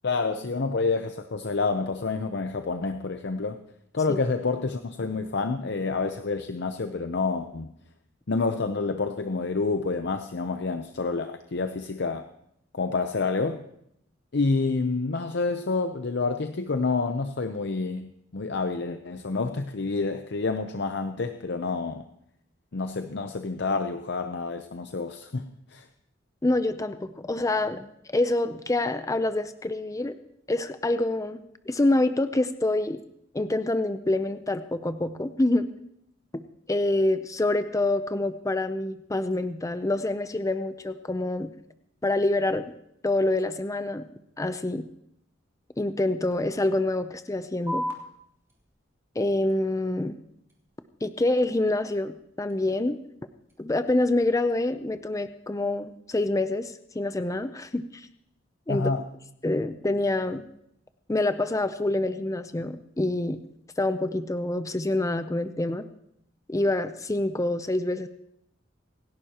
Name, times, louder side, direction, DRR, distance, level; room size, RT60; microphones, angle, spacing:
voice 1, 0.0-3.6 3.9-7.7 8.3-12.3 12.7-13.7 14.3-22.0 22.7-25.8 58.7-59.1, left 4 dB, 65° left, 8 dB, 0.7 m, -28 dB
voice 2, 26.4-30.2 30.5-33.0 33.3-35.7 36.3-36.4 36.7-41.5 42.0-42.6 43.0-44.1 44.4-44.9 45.8-47.9 49.2-50.2 51.0-53.0 53.6-58.1 58.7-58.9 59.4-60.4 61.1-63.4 63.8-65.8 66.5-68.1, left 2 dB, 15° left, 10 dB, 0.5 m, -26 dB
sound 1, 47.7-54.7, equal, 15° right, 3.2 m, -42 dB
27.0 x 11.5 x 2.9 m, 0.76 s
head